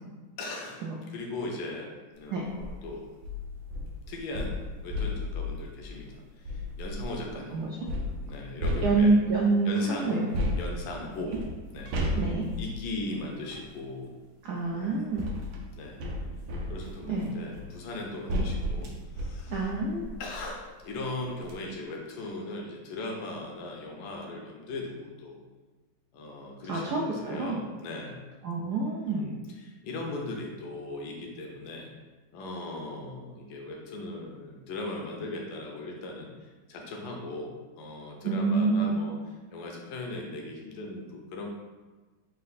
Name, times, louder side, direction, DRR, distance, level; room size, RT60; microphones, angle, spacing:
voice 1, 0.4-3.1 4.1-7.7 8.2-9.1 9.6-10.2 10.6-11.3 11.7-12.2 12.6-14.1 14.7-15.0 15.8-16.0 16.7-19.7 20.2-25.4 26.1-28.2 29.1-31.9 32.3-39.2 39.5-41.5, left 2 dB, 75° left, 0 dB, 1.4 m, -38 dB
sound 1, 2.4-2.8 3.2-7.3 7.9-9.4 10.3-13.7 14.6-20.6 21.0-21.1 21.4-21.5, left 1 dB, 65° right, 1.1 m, -34 dB
voice 2, 8.8-10.3 12.2-12.5 14.4-15.2 17.1-17.3 18.3-18.4 19.5-20.1 26.7-27.6 28.4-29.3 38.2-39.0, right 3 dB, 80° right, -2 dB, 0.8 m, -27 dB
4.2 x 2.5 x 4.0 m, 1.3 s
omnidirectional pair, 2.2 m